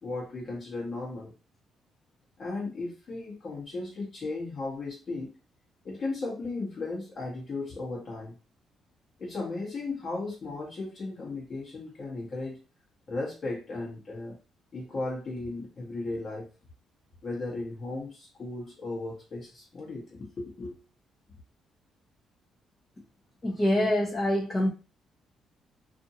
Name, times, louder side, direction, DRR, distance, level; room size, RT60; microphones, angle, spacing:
voice 1, 0.0-1.3 2.4-5.3 5.8-8.3 9.2-12.6 13.1-14.4 14.7-16.5 17.2-20.8, left 3 dB, 45° left, 1.1 m, -36 dB
voice 2, 23.4-24.7, left 1 dB, 25° left, 0.7 m, -25 dB
2.6 x 2.5 x 2.7 m
cardioid pair, 90°, 0 cm